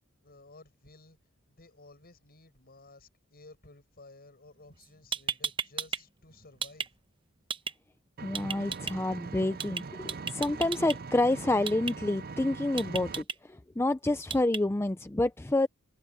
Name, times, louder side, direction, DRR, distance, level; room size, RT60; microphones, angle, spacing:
voice 1, 0.2-1.2 1.5-6.9, left 2 dB, 45° left, 7.8 m, -54 dB
sound 1, 4.8-4.9 5.1-6.0 6.3-6.9 7.5-7.7 8.3-8.9 9.6-9.8 10.1-11.0 11.7-11.9 12.8-13.3 14.3-14.6, right 6 dB, 25° right, 0.9 m, -33 dB
voice 2, 8.2-15.7, left 2 dB, 10° left, 0.4 m, -28 dB
Engine, 8.2-13.2, right 4 dB, 45° right, 0.5 m, -42 dB
head